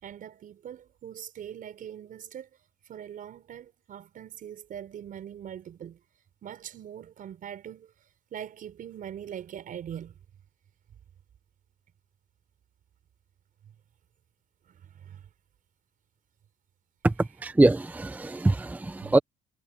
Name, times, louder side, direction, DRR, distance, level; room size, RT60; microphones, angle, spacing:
voice 1, 0.0-2.5 2.9-6.0 6.4-7.9 8.3-10.2 14.7-15.2 19.0-19.2, right 9 dB, 55° right, 5.0 m, -42 dB
voice 2, 17.0-19.2, right 2 dB, 10° right, 0.6 m, -23 dB
cardioid pair, 110°, 17 cm